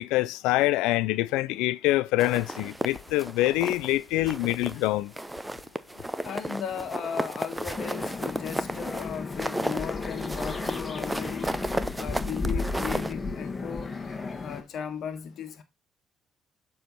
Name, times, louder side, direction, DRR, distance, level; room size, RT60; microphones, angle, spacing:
voice 1, 0.0-5.1, left 17 dB, 75° left, 0.3 m, -25 dB
sound 1, 2.2-3.9 4.3-4.9 5.2-13.1, right 1 dB, 10° right, 0.8 m, -33 dB
voice 2, 6.2-11.6 12.0-14.0 14.4-15.6, left 7 dB, 60° left, 1.5 m, -36 dB
sound 2, 7.8-14.6, left 3 dB, 30° left, 1.5 m, -34 dB
7.0 x 4.7 x 4.1 m
hypercardioid pair, 50°, 0 cm